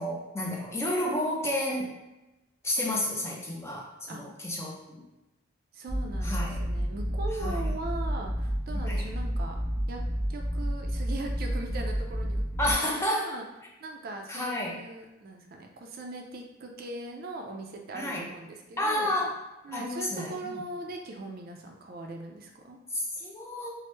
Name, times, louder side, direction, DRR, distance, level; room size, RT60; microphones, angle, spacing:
voice 1, 0.0-2.0 2.6-5.1 6.2-6.6 7.4-7.7 8.7-9.1 12.6-13.3 14.3-14.8 17.9-18.3 18.8-19.3 19.7-20.7 22.9-23.7, left 1 dB, 15° left, -2 dB, 0.4 m, -31 dB
voice 2, 5.7-9.6 9.9-10.0 10.3-13.5 13.8-19.1 19.6-22.8, right 2 dB, 50° right, 2 dB, 0.4 m, -40 dB
sound 1, 5.9-12.7, equal, 50° left, 0.8 m, -30 dB
3.0 x 2.0 x 3.2 m, 1.0 s
head